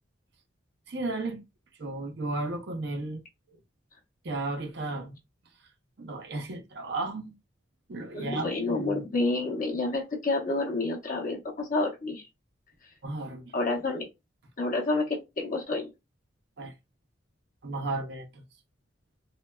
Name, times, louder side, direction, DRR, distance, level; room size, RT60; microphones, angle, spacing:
voice 1, 0.9-1.4 1.8-3.2 3.5-3.6 4.2-5.2 6.0-7.3 7.9-9.0 13.0-13.4 16.6-16.7 17.6-18.4, right 2 dB, 55° right, 0.6 m, -34 dB
voice 2, 8.1-12.3 13.5-14.1 14.6-15.9, left 2 dB, 40° left, 0.8 m, -29 dB
3.2 x 2.2 x 2.2 m
head